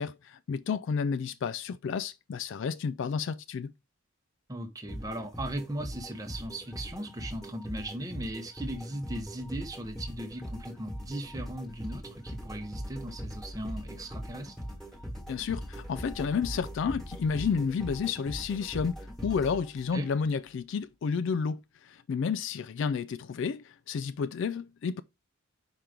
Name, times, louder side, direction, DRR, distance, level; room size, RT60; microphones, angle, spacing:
voice 1, 0.0-3.7 15.3-25.0, left 6 dB, 55° left, 0.3 m, -31 dB
voice 2, 4.5-14.5 19.9-20.1, right 1 dB, 15° right, 0.7 m, -38 dB
sound 1, 4.9-20.1, equal, ahead, 1.4 m, -41 dB
5.2 x 4.5 x 4.9 m
head